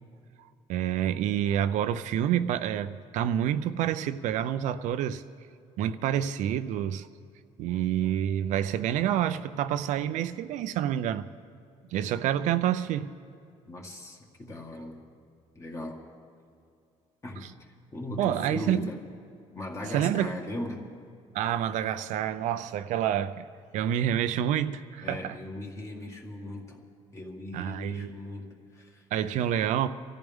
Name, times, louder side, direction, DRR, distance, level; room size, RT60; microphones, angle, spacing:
voice 1, 0.7-5.2 5.8-7.1 7.6-11.3 11.9-13.1 17.4-17.5 18.2-18.9 19.9-20.3 21.3-23.4 23.7-25.4 27.5-28.1 29.1-29.9, right 10 dB, 75° right, 0.6 m, -28 dB
voice 2, 13.7-15.0 15.6-16.0 17.2-17.5 17.9-19.0 19.5-20.9 25.0-26.8 27.1-29.0, left 1 dB, 25° left, 2.0 m, -38 dB
25.0 x 14.0 x 3.6 m
cardioid pair, 135°, 13 cm